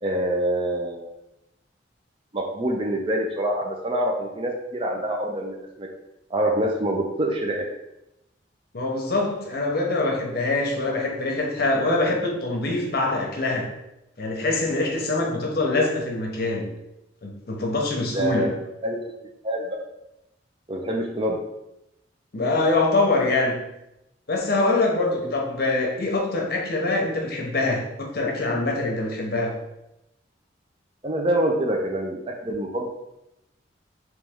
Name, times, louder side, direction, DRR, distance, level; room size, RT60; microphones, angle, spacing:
voice 1, 0.0-1.1 2.3-5.9 6.3-7.7 18.1-19.0 19.4-19.8 20.7-21.4 31.0-32.9, right 1 dB, 30° right, 2 dB, 0.5 m, -26 dB
voice 2, 8.7-13.7 14.2-16.7 17.2-18.5 22.3-23.6 24.3-29.6, left 2 dB, 55° left, 0 dB, 0.8 m, -24 dB
3.2 x 3.0 x 3.5 m, 0.89 s
head